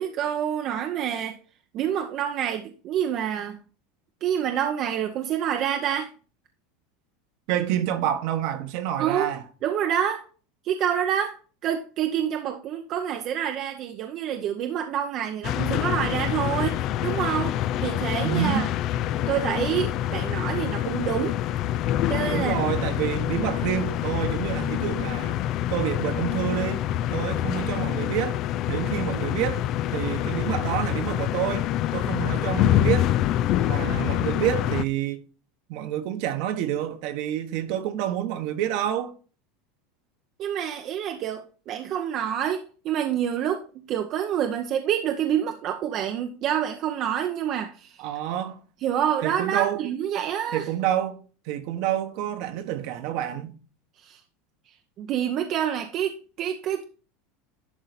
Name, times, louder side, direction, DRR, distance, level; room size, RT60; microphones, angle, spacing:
voice 1, 0.0-1.4 1.7-3.6 4.2-6.1 9.0-9.3 9.6-10.2 10.6-11.4 11.6-18.6 19.3-21.4 22.1-22.6 40.4-48.0 48.8-50.7 54.0-54.2 55.0-56.9, right 9 dB, 45° right, 0.8 m, -27 dB
voice 2, 7.5-9.4 18.2-18.7 22.3-25.4 25.7-26.8 27.1-28.4 28.7-29.6 29.9-33.1 33.6-35.2 35.7-39.1 48.0-48.6 49.2-49.9 50.5-51.2 51.5-53.5, right 11 dB, 65° right, 1.3 m, -28 dB
sound 1, 15.4-34.8, left 12 dB, 50° left, 0.4 m, -26 dB
11.0 x 3.9 x 4.1 m
supercardioid pair, 120°, 0 cm